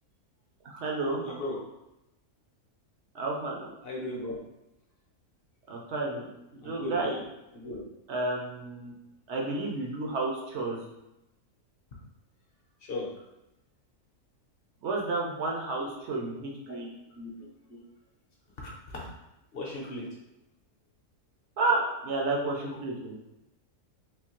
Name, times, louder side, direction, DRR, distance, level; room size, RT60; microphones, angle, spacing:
voice 1, 0.6-1.3 3.1-3.7 5.7-6.3 6.5-7.2 8.1-8.9 9.3-10.8 14.8-16.9 21.6-23.2, right 2 dB, 60° right, -1 dB, 0.9 m, -31 dB
voice 2, 1.2-1.6 3.8-4.4 6.6-7.2 7.5-7.8 12.9-13.1 16.7-16.8 17.1-17.3 17.7-17.8 18.6-19.1 19.5-20.1, left 2 dB, 50° left, -2 dB, 0.8 m, -36 dB
3.6 x 2.8 x 2.9 m, 0.91 s
omnidirectional pair, 1.5 m